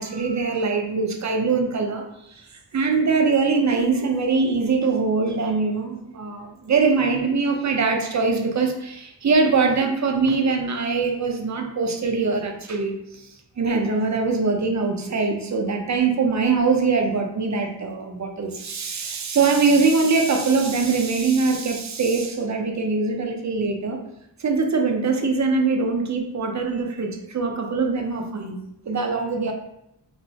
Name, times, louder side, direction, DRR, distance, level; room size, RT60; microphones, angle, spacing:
voice 1, 0.0-13.3 13.6-24.0 24.4-28.6 28.9-29.5, right 4 dB, 40° right, 4 dB, 0.5 m, -22 dB
2.9 x 2.0 x 2.7 m, 0.80 s
wide cardioid pair, 55°, 46 cm